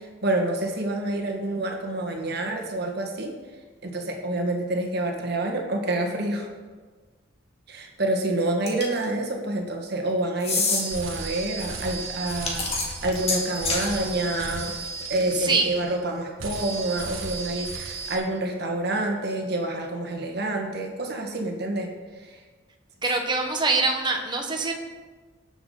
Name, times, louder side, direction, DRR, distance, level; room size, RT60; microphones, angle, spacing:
voice 1, 0.2-3.3 3.8-6.5 7.7-12.6 13.0-14.7 15.1-21.9, right 2 dB, 50° right, 2 dB, 1.7 m, -27 dB
sound 1, 8.7-9.0 10.4-10.8 12.3-13.9, left 3 dB, 30° left, 2.1 m, -26 dB
sound 2, 10.7-16.1 16.4-18.2, right 4 dB, 85° right, 1.6 m, -35 dB
voice 2, 15.4-15.7 23.0-24.7, right 3 dB, 20° right, 2 dB, 1.2 m, -24 dB
18.5 x 7.0 x 3.9 m, 1.4 s
head